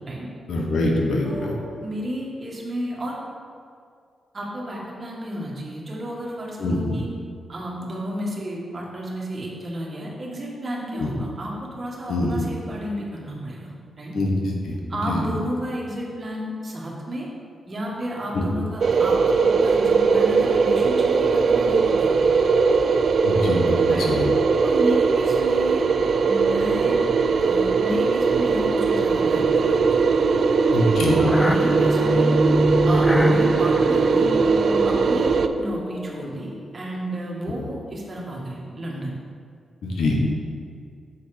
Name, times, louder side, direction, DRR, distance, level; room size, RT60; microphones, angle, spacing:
voice 1, 0.5-1.5 6.6-6.9 10.9-11.1 12.1-12.3 14.1-15.3 18.3-18.4 23.2-24.3 30.7-31.2 39.8-40.2, left 1 dB, 80° left, -1 dB, 1.2 m, -24 dB
voice 2, 1.2-1.5 1.8-3.2 4.3-7.1 7.5-14.2 14.9-17.3 17.7-22.4 23.9-24.1 24.6-25.9 26.2-27.0 27.4-29.8 31.3-32.3 32.9-34.3 34.8-39.2, equal, 40° right, -3 dB, 1.7 m, -32 dB
sound 1, 18.8-35.5, right 5 dB, 60° right, 0.4 m, -20 dB
sound 2, 30.1-36.5, equal, 10° left, 0.4 m, -25 dB
7.2 x 4.1 x 5.1 m, 2.3 s
cardioid pair, 75°, 0 cm